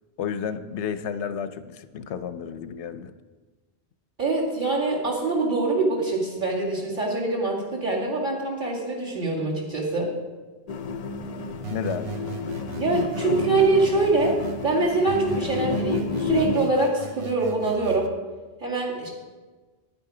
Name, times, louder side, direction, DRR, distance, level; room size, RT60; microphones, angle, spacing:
voice 1, 0.2-3.1 11.7-12.1, left 7 dB, 85° left, 11 dB, 0.9 m, -31 dB
voice 2, 4.2-10.1 12.8-14.4 14.6-18.1 18.6-19.1, right 3 dB, 45° right, -4 dB, 2.5 m, -24 dB
sound 1, 10.7-16.6, left 4 dB, 45° left, 0.5 m, -30 dB
sound 2, 11.6-14.6 15.1-18.1, right 7 dB, 65° right, 0.9 m, -39 dB
9.9 x 8.8 x 4.9 m, 1.3 s
omnidirectional pair, 1.1 m